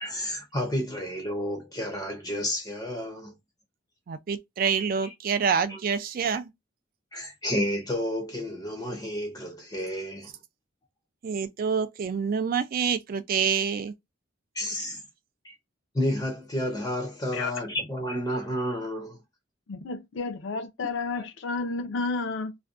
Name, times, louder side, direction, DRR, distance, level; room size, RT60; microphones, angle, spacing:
voice 1, 0.0-3.4 5.0-5.1 5.7-5.8 7.1-10.3 14.5-15.0 15.4-15.5 15.9-19.2, equal, 20° left, 0.5 m, -31 dB
voice 2, 4.1-6.5 11.2-13.9, right 6 dB, 45° right, 0.3 m, -27 dB
voice 3, 19.7-22.6, left 3 dB, 75° left, 0.5 m, -31 dB
2.5 x 2.1 x 2.3 m
head